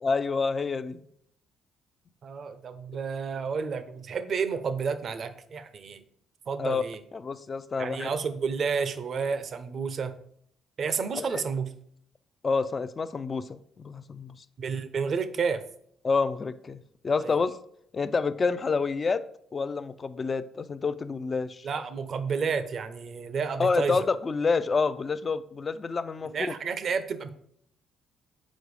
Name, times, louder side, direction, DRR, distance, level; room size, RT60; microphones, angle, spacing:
voice 1, 0.0-1.0 6.6-6.8 7.1-8.1 11.1-11.4 12.4-14.4 16.0-17.6 17.9-19.2 19.5-21.7 23.6-26.3, left 4 dB, 40° left, 12 dB, 0.5 m, -28 dB
voice 2, 2.2-6.0 6.5-7.0 7.8-10.1 10.8-11.7 14.6-15.6 17.2-17.4 21.6-24.0 26.3-27.3, right 5 dB, 55° right, 11 dB, 0.7 m, -30 dB
6.4 x 4.7 x 4.8 m, 0.70 s
hypercardioid pair, 50°, 0 cm